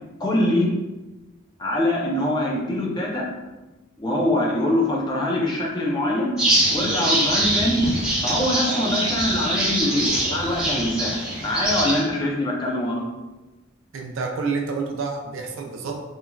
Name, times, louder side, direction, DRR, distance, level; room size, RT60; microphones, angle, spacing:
voice 1, 0.2-0.7 1.6-3.3 4.0-6.4 6.7-7.8 8.2-13.0, left 1 dB, 20° left, -3 dB, 0.4 m, -23 dB
sound 1, 6.4-12.0, right 1 dB, 5° right, 0.9 m, -23 dB
voice 2, 13.9-16.0, right 4 dB, 70° right, 2 dB, 0.4 m, -28 dB
3.0 x 2.3 x 2.3 m, 1.1 s
head